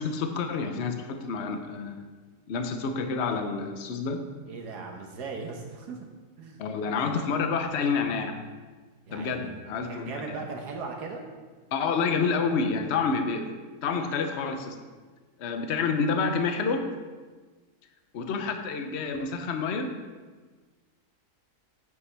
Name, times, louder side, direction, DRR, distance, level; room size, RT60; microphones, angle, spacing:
voice 1, 0.0-2.0 2.5-4.2 6.6-8.4 9.1-10.4 11.7-13.5 13.8-14.8 15.4-16.9 18.1-19.9, left 5 dB, 50° left, 6 dB, 1.0 m, -28 dB
voice 2, 4.5-6.0 6.4-6.7 9.1-9.5 9.9-11.2, right 4 dB, 85° right, 2 dB, 1.6 m, -38 dB
9.5 x 8.8 x 3.4 m, 1.4 s
omnidirectional pair, 1.7 m